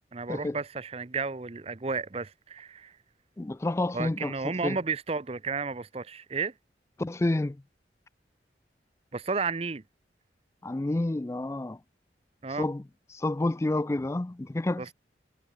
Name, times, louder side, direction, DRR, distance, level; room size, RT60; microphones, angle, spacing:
voice 1, 0.1-2.9 3.9-6.5 9.1-9.8 12.4-12.7 14.8-14.9, right 4 dB, 35° right, 0.7 m, -32 dB
voice 2, 3.4-4.8 7.0-7.6 10.6-11.8 12.6-12.8 13.1-14.9, left 2 dB, 15° left, 0.3 m, -29 dB
head